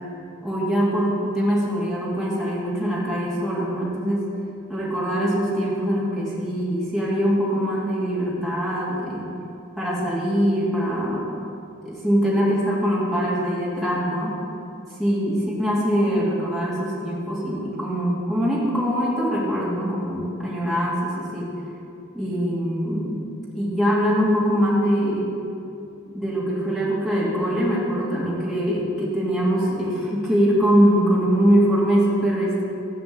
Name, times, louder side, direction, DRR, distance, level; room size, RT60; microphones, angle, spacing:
voice 1, 0.4-4.2 4.7-9.3 9.8-11.3 11.8-14.4 15.0-21.5 22.1-23.2 23.5-25.3 26.1-32.6, equal, ahead, -7 dB, 2.6 m, -23 dB
15.0 x 5.1 x 8.4 m, 2.7 s
head